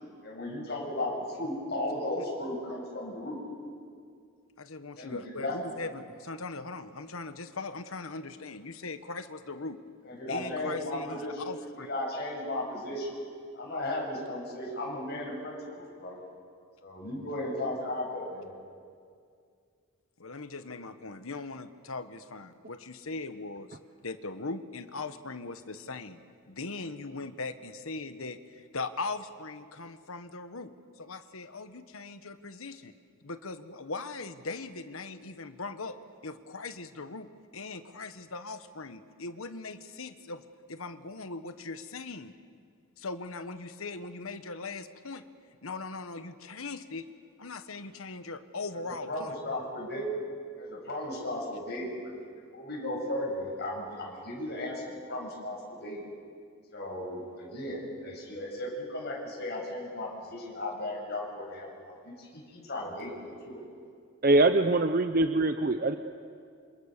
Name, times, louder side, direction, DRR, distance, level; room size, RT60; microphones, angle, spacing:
voice 1, 0.2-3.4 5.0-5.6 10.0-11.4 11.8-13.1 13.5-16.2 16.8-18.5 48.9-50.2 50.6-52.1 52.5-56.0 56.7-63.6 64.2-64.4, left 1 dB, 50° left, -2 dB, 7.9 m, -35 dB
voice 2, 4.6-9.8 10.3-11.9 20.2-32.9 33.2-36.0 36.2-40.4 40.7-42.3 43.0-45.2 45.6-47.1 47.4-49.3, left 3 dB, 75° left, 10 dB, 1.4 m, -40 dB
voice 3, 64.2-66.0, right 2 dB, 40° right, 8 dB, 0.7 m, -23 dB
28.0 x 27.0 x 6.8 m, 2.2 s
head